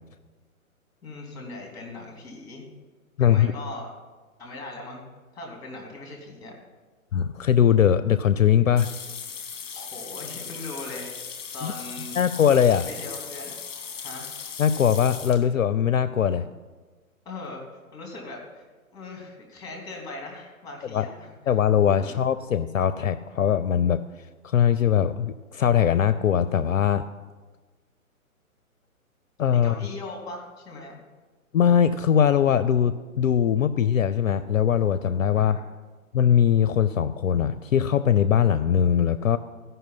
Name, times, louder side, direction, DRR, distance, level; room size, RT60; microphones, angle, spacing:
voice 1, 1.0-2.7 3.2-3.9 4.4-5.0 5.3-6.5 9.7-11.1 11.5-12.2 12.8-13.5 14.0-14.3 17.2-17.6 17.9-18.7 18.9-21.3 22.0-22.2 29.6-31.0 35.3-35.6, left 2 dB, 10° left, 0 dB, 2.3 m, -39 dB
voice 2, 3.2-3.5 7.1-8.9 11.6-11.7 12.2-12.9 14.6-16.5 20.9-21.1 21.5-24.0 24.4-27.0 29.4-29.8 31.5-35.6 36.1-39.4, left 9 dB, 65° left, 14 dB, 0.5 m, -21 dB
sound 1, 8.8-15.4, left 6 dB, 25° left, 1.2 m, -38 dB
14.0 x 5.6 x 5.5 m, 1.3 s
figure-of-eight pair, 130°, 43 cm